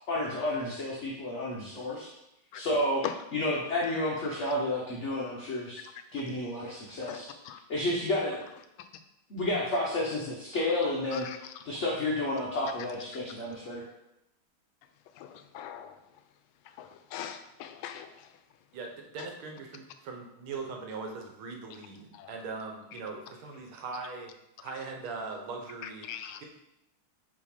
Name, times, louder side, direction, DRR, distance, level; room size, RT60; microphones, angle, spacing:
voice 1, 0.1-2.1 2.5-3.0 3.3-5.8 6.1-7.3 7.7-8.4 9.3-11.3 11.6-13.8, left 1 dB, 50° left, -4 dB, 0.9 m, -31 dB
voice 2, 7.1-7.6 11.1-11.5 15.2-16.0 16.8-18.3 22.1-22.3 25.8-26.4, left 10 dB, 80° left, 8 dB, 1.4 m, -41 dB
voice 3, 18.7-24.3 24.6-26.1 26.4-26.5, right 4 dB, 80° right, 2 dB, 1.8 m, -40 dB
5.5 x 3.5 x 5.0 m, 0.87 s
omnidirectional pair, 2.3 m